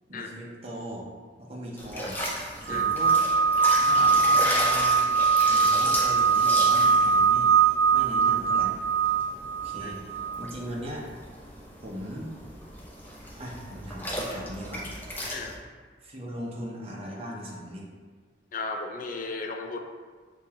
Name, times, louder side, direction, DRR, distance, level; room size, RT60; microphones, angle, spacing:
voice 1, 0.1-1.1 1.4-3.2 3.8-5.0 5.4-8.7 9.6-10.0 10.4-11.1 11.8-12.3 13.4-14.8 16.0-17.9, equal, 35° right, -3 dB, 0.7 m, -39 dB
sound 1, 1.8-15.6, equal, 10° left, 0.7 m, -36 dB
sound 2, 2.7-10.4, right 5 dB, 60° right, 0.3 m, -22 dB
voice 2, 18.5-19.8, left 3 dB, 45° left, 3 dB, 0.4 m, -35 dB
6.7 x 2.3 x 2.8 m, 1.5 s
head